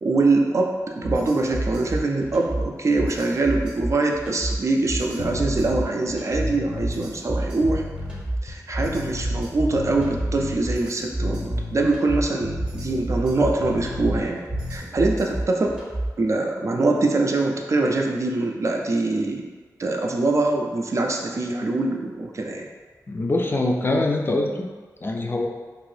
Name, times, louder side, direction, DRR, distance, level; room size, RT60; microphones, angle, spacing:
voice 1, 0.0-7.8 8.4-14.4 14.7-15.8 16.2-19.5 19.8-22.7, right 2 dB, 50° right, 1 dB, 0.4 m, -23 dB
sound 1, 1.0-16.3, right 1 dB, 15° right, 0.7 m, -30 dB
sound 2, 5.2-5.8 6.3-9.5 9.7-10.6 11.1-14.3 14.5-14.8, left 3 dB, 85° left, 0.5 m, -34 dB
voice 2, 23.1-24.7 25.0-25.5, left 2 dB, 35° left, 1 dB, 0.3 m, -23 dB
2.7 x 2.5 x 3.2 m, 1.4 s
wide cardioid pair, 90°, 7 cm